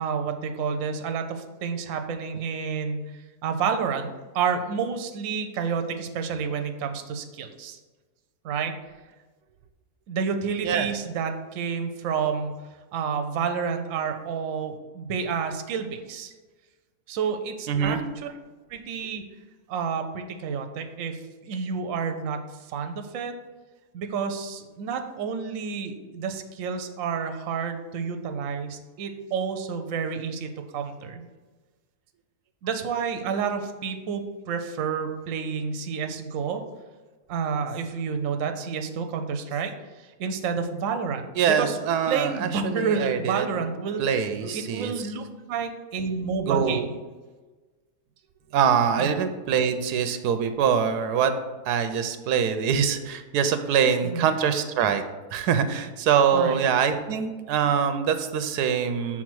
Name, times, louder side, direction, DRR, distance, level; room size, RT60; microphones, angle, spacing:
voice 1, 0.0-3.0 3.4-7.8 8.4-8.7 10.1-12.5 12.9-16.3 17.1-18.3 18.7-19.2 19.7-22.4 22.7-23.3 23.9-31.3 32.6-36.6 37.3-39.7 40.0-41.8 42.1-44.0 44.4-46.8 49.0-49.2 54.0-54.3 56.3-56.6, right 6 dB, 65° right, 6 dB, 1.0 m, -29 dB
voice 2, 17.7-18.0 41.4-43.5 44.0-44.9 46.5-46.9 48.5-51.3 51.7-55.0 55.3-59.2, right 7 dB, 90° right, 9 dB, 1.2 m, -24 dB
6.0 x 4.0 x 6.1 m, 1.3 s
omnidirectional pair, 1.7 m